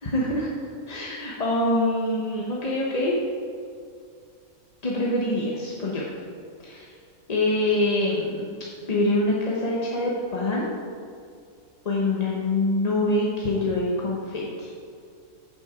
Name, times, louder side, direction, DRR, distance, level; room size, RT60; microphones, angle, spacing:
voice 1, 0.0-0.5 0.9-3.2 4.8-6.1 6.6-6.9 7.3-8.5 8.9-10.7 11.8-14.7, left 1 dB, 30° left, -4 dB, 0.9 m, -25 dB
8.8 x 7.3 x 5.0 m, 2.3 s
omnidirectional pair, 1.5 m